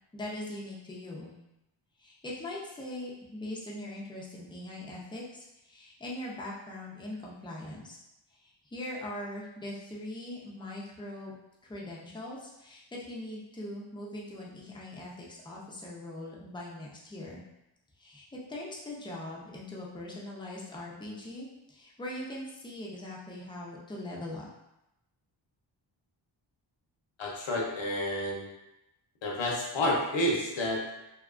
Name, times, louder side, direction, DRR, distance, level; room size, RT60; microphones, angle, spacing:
voice 1, 0.1-1.3 2.0-8.0 8.4-11.3 11.6-17.4 18.0-24.5, left 1 dB, 10° left, -4 dB, 0.4 m, -41 dB
voice 2, 27.2-28.5 29.2-31.0, left 1 dB, 75° left, -2 dB, 0.7 m, -30 dB
2.7 x 2.2 x 2.4 m, 0.90 s
wide cardioid pair, 140°, 46 cm